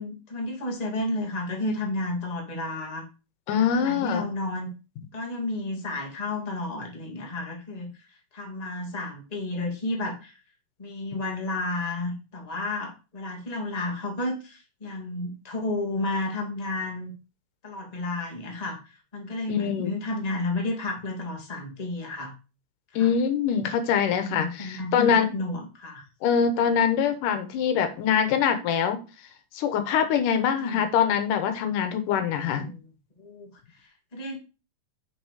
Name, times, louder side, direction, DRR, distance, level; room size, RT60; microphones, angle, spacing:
voice 1, 0.0-3.0 3.6-4.7 5.1-7.9 8.3-10.4 10.8-17.1 17.6-18.8 19.1-22.3 22.9-23.1 24.1-26.0 30.6-30.8 32.5-32.8 33.2-33.5 33.8-34.4, left 2 dB, 15° left, -1 dB, 1.8 m, -32 dB
voice 2, 3.5-4.3 19.5-19.9 23.0-25.3 26.2-29.0 29.5-32.7, left 7 dB, 80° left, 8 dB, 2.6 m, -24 dB
6.3 x 6.2 x 4.8 m, 0.32 s
omnidirectional pair, 3.7 m